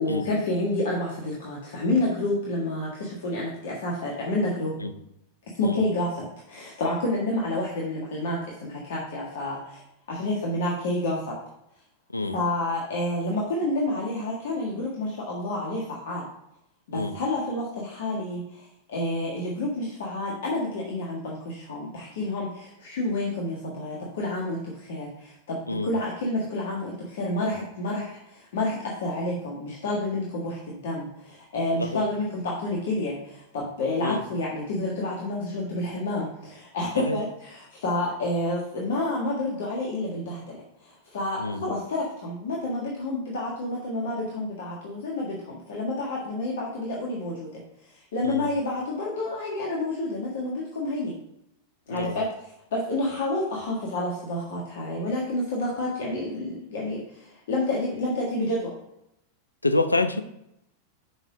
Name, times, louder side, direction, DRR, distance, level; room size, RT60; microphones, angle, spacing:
voice 1, 0.0-4.7 5.5-9.8 10.1-11.4 12.3-16.2 16.9-51.1 51.9-58.7, left 2 dB, 60° left, -3 dB, 1.6 m, -29 dB
voice 2, 59.6-60.2, left 2 dB, 85° left, 10 dB, 0.6 m, -27 dB
7.2 x 5.6 x 4.8 m, 0.82 s
figure-of-eight pair, 90°, 0 cm